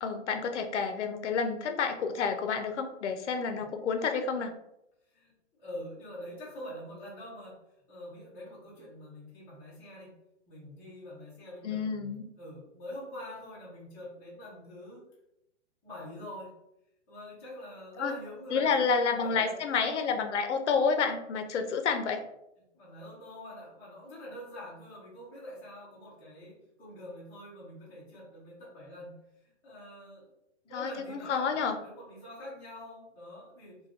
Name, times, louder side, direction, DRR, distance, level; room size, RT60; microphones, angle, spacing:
voice 1, 0.0-4.5 11.6-12.2 18.0-18.1 18.5-22.2 30.7-31.8, left 5 dB, 70° left, 6 dB, 0.6 m, -29 dB
voice 2, 5.1-7.6 7.9-10.1 10.5-15.0 15.8-16.5 17.1-19.6 22.7-29.2 29.4-30.3 30.6-33.8, left 1 dB, 5° left, -9 dB, 0.4 m, -45 dB
2.3 x 2.3 x 3.5 m, 0.83 s
hypercardioid pair, 150°, 37 cm